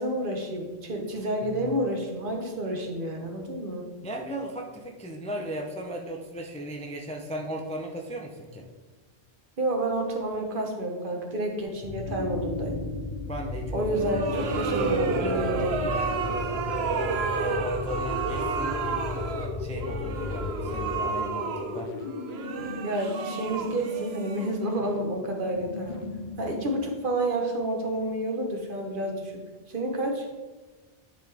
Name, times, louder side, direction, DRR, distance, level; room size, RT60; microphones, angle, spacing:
voice 1, 0.0-3.8 9.6-12.8 13.7-15.7 22.8-26.0 26.4-29.3 29.7-30.3, right 1 dB, 55° right, 2 dB, 1.1 m, -29 dB
voice 2, 4.0-8.7 13.3-14.1 14.7-16.9 17.4-18.8 19.6-21.9, equal, 10° left, 1 dB, 0.4 m, -36 dB
sound 1, 11.8-21.0, left 2 dB, 85° left, 1.3 m, -36 dB
sound 2, 12.0-26.9, left 4 dB, 50° left, 0.7 m, -37 dB
sound 3, 13.9-24.9, right 5 dB, 75° right, 0.9 m, -31 dB
10.5 x 4.1 x 3.3 m, 1.3 s
omnidirectional pair, 1.1 m